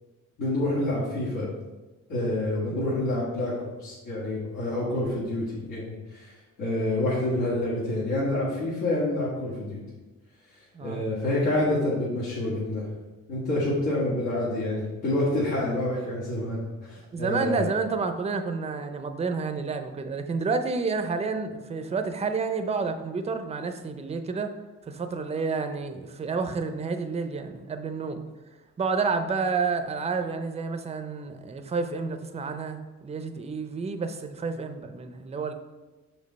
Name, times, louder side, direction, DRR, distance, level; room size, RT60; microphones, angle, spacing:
voice 1, 0.4-1.5 2.1-9.8 10.8-12.8 13.3-17.7, left 1 dB, 80° left, -8 dB, 1.9 m, -28 dB
voice 2, 17.1-24.5 24.9-28.2 28.8-35.5, right 4 dB, 20° right, 7 dB, 0.5 m, -30 dB
6.1 x 5.3 x 4.0 m, 1.1 s
wide cardioid pair, 150°, 31 cm